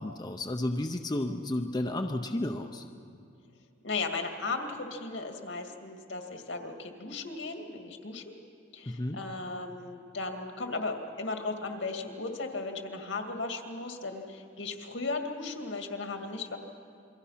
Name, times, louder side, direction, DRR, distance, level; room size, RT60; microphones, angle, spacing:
voice 1, 0.0-2.8 8.9-9.2, left 1 dB, 20° left, 5 dB, 0.7 m, -32 dB
voice 2, 3.8-8.3 8.7-16.6, left 3 dB, 75° left, 4 dB, 2.2 m, -36 dB
28.0 x 22.5 x 5.8 m, 2.5 s
head